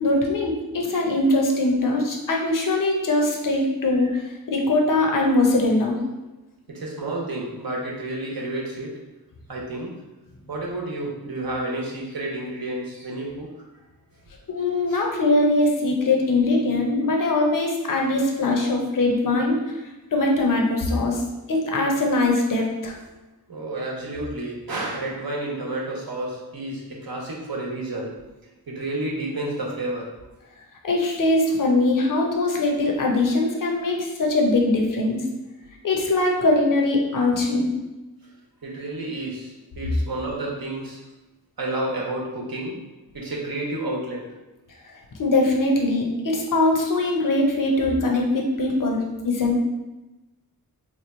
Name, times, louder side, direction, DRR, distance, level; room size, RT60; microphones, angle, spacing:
voice 1, 0.0-6.0 14.5-19.7 20.1-21.2 21.5-22.9 30.8-35.2 35.8-37.8 45.2-49.6, left 2 dB, 55° left, 0 dB, 0.7 m, -21 dB
voice 2, 6.7-8.9 9.5-10.0 10.5-13.5 14.9-15.0 23.5-28.2 28.7-30.2 38.6-41.0 41.6-42.8 43.1-44.3, right 2 dB, 70° right, -2 dB, 0.9 m, -30 dB
3.0 x 2.3 x 4.2 m, 1.1 s
wide cardioid pair, 80°, 38 cm